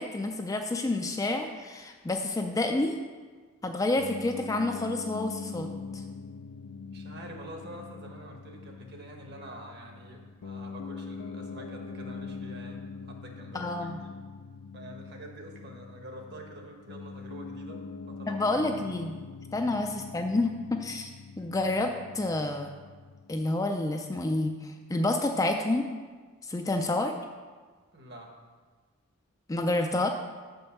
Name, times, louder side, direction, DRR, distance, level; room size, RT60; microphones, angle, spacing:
voice 1, 0.0-3.0 3.6-5.7 5.9-6.0 13.5-14.0 18.3-19.2 19.5-21.1 21.4-22.7 23.3-25.8 26.4-27.1 29.5-30.1, left 2 dB, 15° left, 4 dB, 0.3 m, -29 dB
voice 2, 2.3-2.7 6.9-14.1 14.7-18.7 27.9-28.3, right 1 dB, 50° right, 2 dB, 1.1 m, -47 dB
Piano, 4.0-23.4, left 4 dB, 85° left, 0.4 m, -42 dB
6.1 x 5.3 x 6.9 m, 1.5 s
head